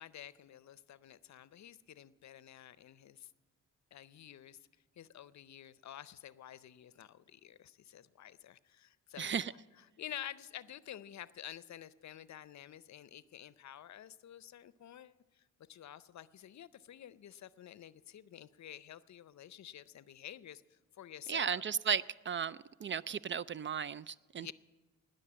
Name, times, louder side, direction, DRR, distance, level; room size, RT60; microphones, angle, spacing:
voice 1, 0.0-3.3 3.9-4.6 5.0-9.6 10.0-15.2 15.7-20.6 21.0-21.6 24.4-24.5, left 11 dB, 60° left, 0.6 m, -50 dB
voice 2, 9.2-9.5 21.3-24.5, right 7 dB, 40° right, 0.4 m, -35 dB
19.5 x 6.6 x 8.6 m
supercardioid pair, 50°, 32 cm